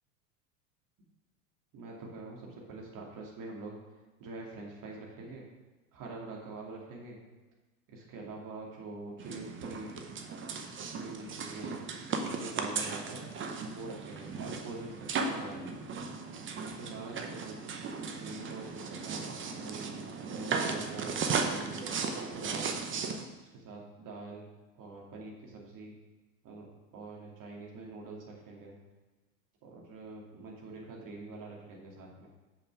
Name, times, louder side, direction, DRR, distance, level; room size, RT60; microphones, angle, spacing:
voice 1, 1.7-3.8 4.2-5.4 5.9-7.2 7.9-10.0 10.8-11.8 12.2-13.3 13.6-15.8 16.5-17.6 18.1-19.9 20.3-22.0 22.3-22.7 23.4-24.5 24.7-26.0 26.4-28.8 29.6-32.3, right 3 dB, 40° right, -2 dB, 2.6 m, -45 dB
sound 1, 9.2-23.3, right 5 dB, 25° right, 0.9 m, -36 dB
6.5 x 5.6 x 6.0 m, 1.2 s
hypercardioid pair, 90°, 47 cm